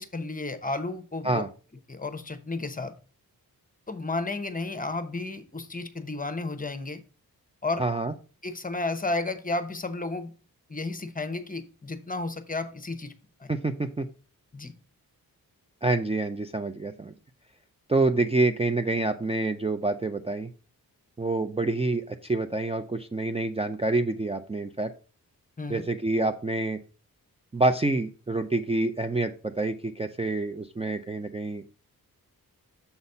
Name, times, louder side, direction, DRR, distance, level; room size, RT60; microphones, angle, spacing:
voice 1, 0.0-1.4 1.9-2.9 3.9-7.0 7.6-7.8 8.4-10.3 10.7-13.1 13.4-13.5 14.5-14.7 25.6-25.8, left 2 dB, 25° left, 10 dB, 0.8 m, -32 dB
voice 2, 7.8-8.1 13.5-14.1 15.8-17.1 17.9-20.5 21.2-24.9 25.7-26.8 27.5-31.7, right 2 dB, 15° right, 7 dB, 0.4 m, -27 dB
7.0 x 4.1 x 5.3 m, 0.36 s
wide cardioid pair, 130°, 36 cm